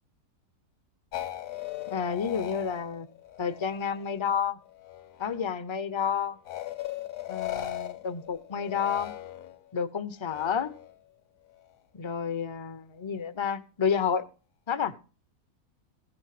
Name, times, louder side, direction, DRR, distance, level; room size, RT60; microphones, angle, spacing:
sound 1, 1.1-4.3 4.7-5.5 6.5-9.7 10.2-11.0, left 13 dB, 65° left, 1.1 m, -39 dB
voice 1, 1.9-3.1 3.4-4.6 5.2-6.4 7.3-9.1 9.7-10.7 11.9-14.3 14.7-14.9, left 7 dB, 40° left, 12 dB, 0.4 m, -30 dB
15.5 x 5.3 x 7.5 m, 0.36 s
omnidirectional pair, 1.6 m